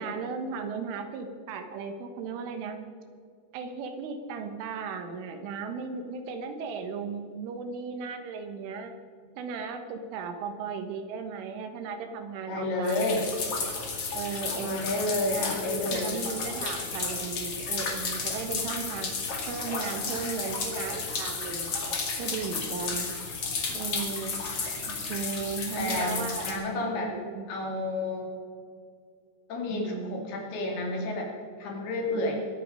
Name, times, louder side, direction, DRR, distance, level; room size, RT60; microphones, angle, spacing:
voice 1, 0.0-2.8 3.5-8.9 9.4-13.0 14.1-19.1 19.5-21.8 22.2-23.2 23.7-24.4 24.9-27.5 29.7-30.2 32.1-32.5, right 5 dB, 90° right, 7 dB, 3.9 m, -36 dB
voice 2, 12.5-13.3 14.6-16.2 20.8-20.9 25.8-27.1 27.5-28.3 29.5-31.3 31.6-32.4, left 2 dB, 60° left, 0 dB, 4.1 m, -30 dB
sound 1, 12.8-26.5, left 4 dB, 45° left, 2.3 m, -33 dB
23.0 x 9.1 x 5.6 m, 2.3 s
omnidirectional pair, 5.5 m